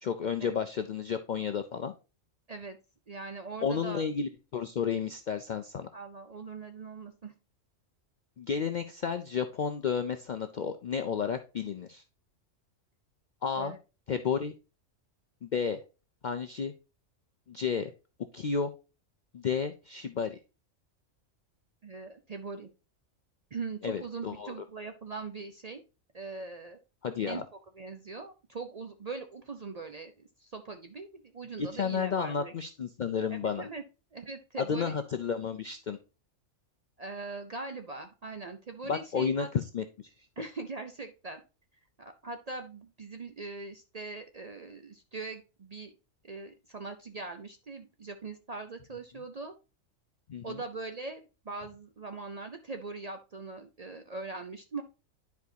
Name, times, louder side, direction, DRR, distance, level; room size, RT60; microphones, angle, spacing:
voice 1, 0.0-1.9 3.6-5.9 8.4-12.0 13.4-13.7 14.1-14.5 15.4-15.8 16.2-16.7 17.5-17.9 18.3-18.7 19.3-20.4 23.8-24.5 27.0-27.4 31.6-33.7 34.7-36.0 38.9-39.8 50.3-50.6, left 6 dB, 60° left, 8 dB, 0.5 m, -32 dB
voice 2, 3.1-4.0 5.9-7.3 13.6-13.8 21.8-22.7 23.5-25.8 26.1-26.8 27.2-27.4 27.8-32.5 33.3-33.8 34.1-35.1 37.0-39.5 40.4-41.4 42.0-45.9 46.2-49.5 50.4-54.8, right 3 dB, 45° right, 6 dB, 0.5 m, -41 dB
10.5 x 4.7 x 2.7 m, 0.30 s
omnidirectional pair, 1.3 m